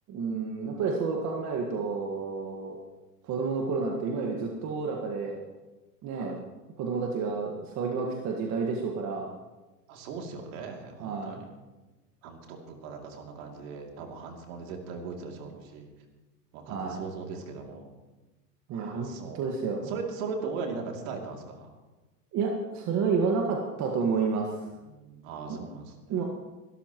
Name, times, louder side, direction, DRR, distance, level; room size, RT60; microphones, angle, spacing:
voice 1, 0.1-2.8 3.2-5.4 6.0-6.4 6.8-9.3 11.0-11.4 16.7-17.0 18.7-19.1 19.3-19.9 22.3-24.5 25.5-25.6 26.1-26.2, right 5 dB, 35° right, 1 dB, 1.8 m, -30 dB
voice 2, 6.1-6.4 9.9-11.5 12.2-15.9 16.5-17.9 18.7-19.4 19.8-21.7 24.7-26.2, right 4 dB, 55° right, 2 dB, 2.9 m, -39 dB
22.5 x 13.0 x 3.1 m, 1.1 s
hypercardioid pair, 110°, 49 cm